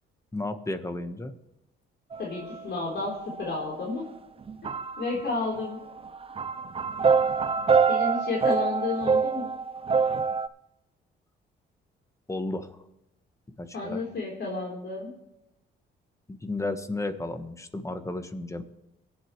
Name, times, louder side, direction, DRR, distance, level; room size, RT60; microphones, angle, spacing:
voice 1, 0.3-1.3 12.3-12.8 13.6-14.0 16.3-18.6, left 2 dB, 15° left, 8 dB, 1.3 m, -33 dB
sound 1, 2.1-2.7 3.0-4.0 4.4-10.5, right 5 dB, 30° right, 0.5 m, -26 dB
voice 2, 2.2-4.0 5.0-5.8 7.9-9.5 13.7-15.1, left 3 dB, 60° left, -3 dB, 3.8 m, -31 dB
22.5 x 8.1 x 3.2 m, 0.89 s
cardioid pair, 90°, 20 cm